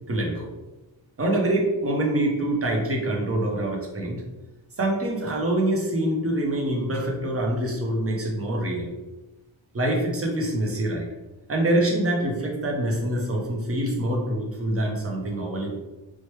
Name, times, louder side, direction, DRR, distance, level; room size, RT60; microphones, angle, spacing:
voice 1, 0.1-0.5 1.2-4.2 4.8-8.9 9.7-11.0 11.5-15.8, right 1 dB, 30° right, -1 dB, 0.6 m, -25 dB
3.0 x 2.1 x 3.1 m, 1.1 s
wide cardioid pair, 145°, 47 cm